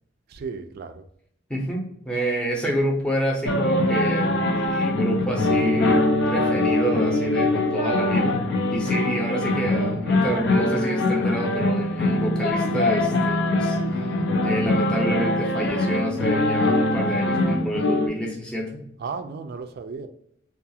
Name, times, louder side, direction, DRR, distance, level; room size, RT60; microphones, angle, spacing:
voice 1, 0.3-1.0 19.0-20.1, right 5 dB, 55° right, 8 dB, 0.3 m, -34 dB
voice 2, 1.5-6.0 6.3-8.4 8.7-13.8 14.4-18.8, equal, 5° left, -2 dB, 0.6 m, -28 dB
sound 1, 3.5-18.1, left 2 dB, 65° left, 0.4 m, -22 dB
2.3 x 2.3 x 2.7 m, 0.69 s
head